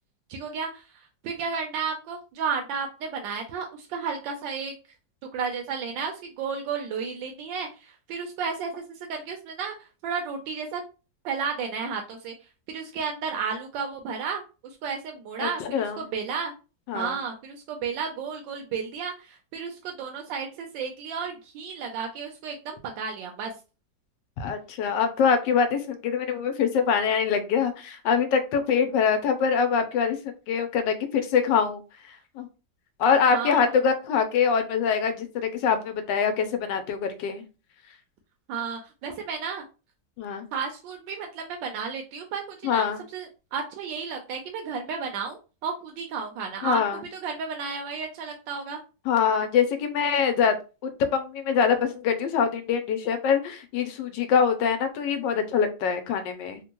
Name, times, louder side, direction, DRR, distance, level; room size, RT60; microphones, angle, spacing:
voice 1, 0.3-0.8 1.2-4.7 5.3-8.8 9.1-9.7 10.0-10.8 11.2-12.3 12.7-16.5 16.9-23.5 33.3-33.7 38.5-39.6 40.5-46.8 47.1-48.8, right 6 dB, 85° right, 2 dB, 1.3 m, -32 dB
voice 2, 15.4-16.0 16.9-17.2 24.4-30.2 30.5-31.8 32.4-32.5 33.0-37.4 40.2-40.5 42.6-43.0 46.6-47.0 49.1-50.5 51.0-56.6, left 6 dB, 80° left, 7 dB, 1.2 m, -24 dB
3.5 x 2.2 x 2.9 m, 0.31 s
omnidirectional pair, 2.0 m